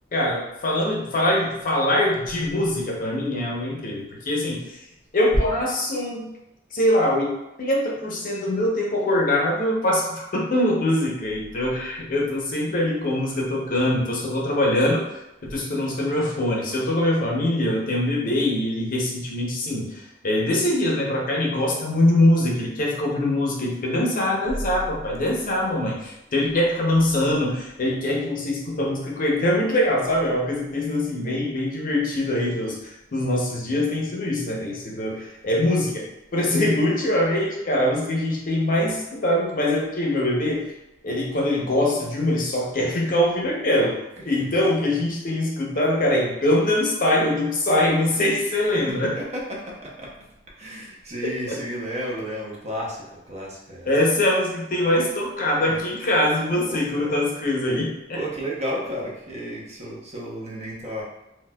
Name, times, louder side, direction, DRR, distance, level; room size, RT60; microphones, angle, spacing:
voice 1, 0.1-4.8 5.1-6.3 6.7-7.3 7.6-15.0 15.4-36.0 36.3-40.6 41.0-44.0 44.2-49.1 51.5-51.6 53.9-58.2, left 1 dB, 45° left, -2 dB, 0.6 m, -23 dB
voice 2, 44.2-44.5 48.4-50.1 50.6-53.9 55.6-55.8 56.5-57.1 58.1-61.0, equal, 35° right, -3 dB, 0.6 m, -33 dB
4.1 x 2.2 x 2.2 m, 0.92 s
head